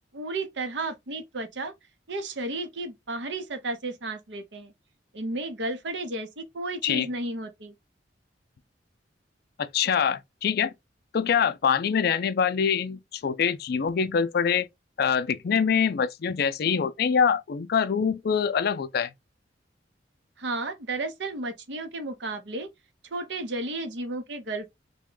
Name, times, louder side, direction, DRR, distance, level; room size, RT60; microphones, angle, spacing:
voice 1, 0.1-1.7 2.1-4.7 5.1-7.7 20.4-22.7 23.1-24.7, right 2 dB, 70° right, 0.7 m, -33 dB
voice 2, 9.6-10.7 11.1-14.7 15.0-19.1, left 7 dB, 60° left, 0.4 m, -24 dB
3.5 x 2.2 x 3.7 m
head